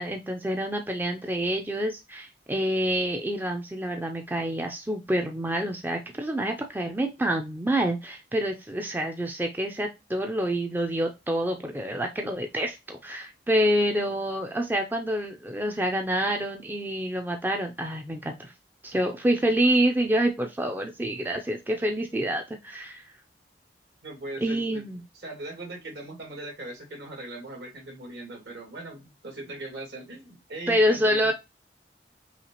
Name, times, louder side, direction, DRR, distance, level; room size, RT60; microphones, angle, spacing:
voice 1, 0.0-18.5 18.8-23.0 24.4-25.0 30.7-31.3, right 1 dB, 10° right, 3 dB, 0.4 m, -27 dB
voice 2, 24.0-24.8 25.1-31.3, right 2 dB, 70° right, -1 dB, 2.1 m, -39 dB
5.7 x 2.4 x 2.9 m, 0.23 s
head